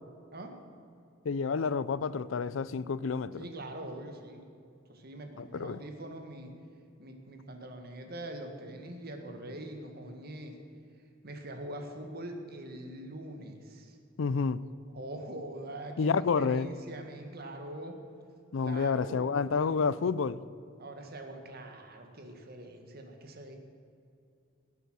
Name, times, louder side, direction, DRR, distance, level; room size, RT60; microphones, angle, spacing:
voice 1, 1.3-3.4 5.4-5.8 14.2-14.6 16.0-16.7 18.5-20.4, left 5 dB, 85° left, 0.5 m, -29 dB
voice 2, 3.4-4.4 4.9-6.5 7.0-10.6 11.2-14.0 14.9-18.0 18.6-19.7 20.8-23.6, right 1 dB, 55° right, 1.7 m, -43 dB
18.5 x 8.3 x 6.3 m
head